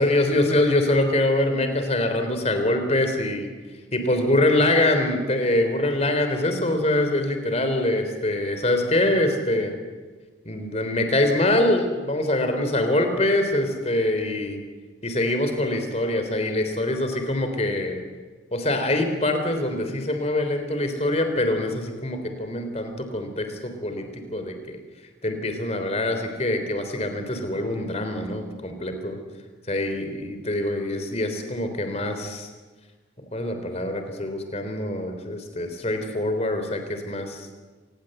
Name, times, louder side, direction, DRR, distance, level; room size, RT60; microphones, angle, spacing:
voice 1, 0.0-3.5 3.9-9.7 10.4-14.6 15.0-18.0 18.5-24.8 25.2-29.2 29.7-32.5 33.3-37.5, left 1 dB, 35° left, 6 dB, 3.5 m, -24 dB
26.0 x 20.0 x 7.9 m, 1.4 s
head